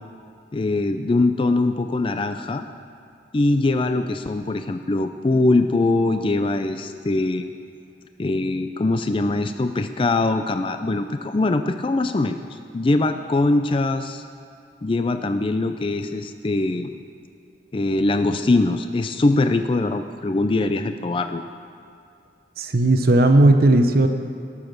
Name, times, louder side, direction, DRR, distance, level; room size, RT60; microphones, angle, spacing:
voice 1, 0.5-2.7 3.3-7.5 8.2-14.2 14.8-16.9 17.7-21.4, left 2 dB, 30° left, 8 dB, 0.4 m, -22 dB
voice 2, 22.6-24.1, right 2 dB, 55° right, 6 dB, 0.8 m, -15 dB
18.0 x 7.1 x 6.6 m, 2.5 s
head